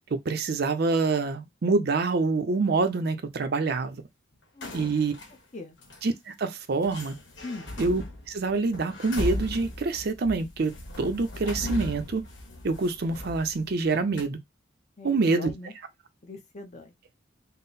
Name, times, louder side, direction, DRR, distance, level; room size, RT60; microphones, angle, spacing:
voice 1, 0.3-4.0 4.7-5.1 6.0-7.2 7.8-10.7 11.0-12.2 12.6-14.4 15.0-15.5, right 3 dB, 55° right, 0.5 m, -26 dB
voice 2, 4.5-5.0 5.5-5.8 7.4-7.7 15.0-15.7 16.2-16.9, left 3 dB, 40° left, 0.8 m, -41 dB
sound 1, 4.6-5.3 5.8-6.0 6.8-13.9 14.2-14.3, left 1 dB, 70° left, 1.2 m, -37 dB
3.7 x 2.0 x 4.0 m
head